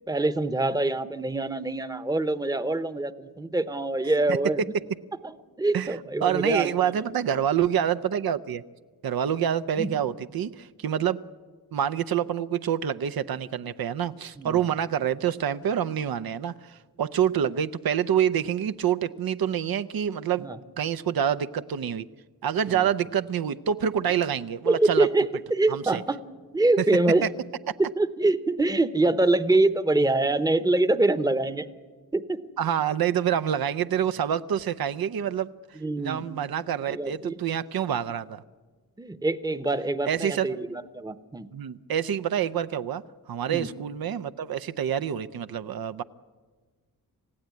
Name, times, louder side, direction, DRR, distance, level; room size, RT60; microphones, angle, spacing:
voice 1, 0.1-4.6 5.2-6.9 9.8-9.9 14.4-14.6 20.4-20.6 22.7-22.9 24.7-26.2 26.5-27.3 27.8-31.7 32.1-32.4 35.8-36.2 36.9-37.3 39.0-41.5 43.5-43.7, right 2 dB, 10° right, 12 dB, 0.9 m, -25 dB
voice 2, 5.7-8.6 9.0-11.2 11.7-20.5 20.8-22.0 22.4-25.1 25.7-26.0 27.2-27.3 32.6-35.5 36.0-38.4 40.1-40.5 41.5-43.0 43.3-46.0, right 9 dB, 75° right, 12 dB, 0.7 m, -27 dB
28.0 x 16.0 x 9.5 m, 1.4 s
wide cardioid pair, 125°, 37 cm